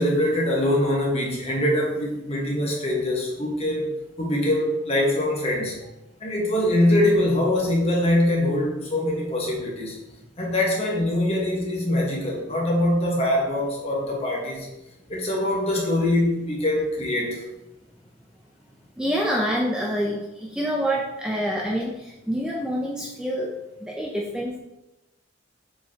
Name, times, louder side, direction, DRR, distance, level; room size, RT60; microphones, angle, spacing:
voice 1, 0.0-3.9 4.2-5.7 6.2-10.0 10.4-14.7 15.1-17.4, left 1 dB, 30° left, -2 dB, 1.3 m, -23 dB
voice 2, 19.0-23.5 23.8-24.6, equal, 5° right, -4 dB, 0.5 m, -27 dB
7.1 x 4.6 x 2.9 m, 0.96 s
head